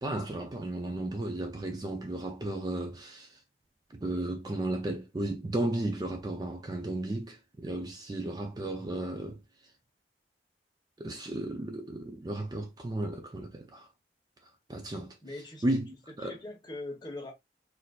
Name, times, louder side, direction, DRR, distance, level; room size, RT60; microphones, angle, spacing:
voice 1, 0.0-3.4 3.9-9.4 11.0-13.9 14.4-15.2 15.6-16.4, right 1 dB, 20° right, 0.4 m, -34 dB
voice 2, 15.2-15.6 16.2-17.3, left 2 dB, 25° left, 1.0 m, -41 dB
4.1 x 2.5 x 2.2 m
head